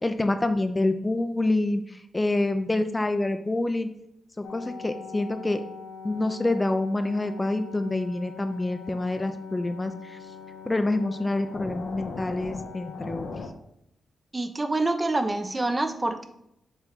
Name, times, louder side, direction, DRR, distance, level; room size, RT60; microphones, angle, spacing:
voice 1, 0.0-1.8 2.1-3.9 4.4-5.6 6.0-10.2 10.7-13.3, left 2 dB, 25° left, 8 dB, 0.5 m, -27 dB
sound 1, 4.4-13.5, left 5 dB, 80° left, 0.8 m, -41 dB
voice 2, 14.3-16.3, right 2 dB, 25° right, 7 dB, 0.8 m, -26 dB
7.1 x 3.3 x 4.0 m, 0.78 s
supercardioid pair, 55°, 0 cm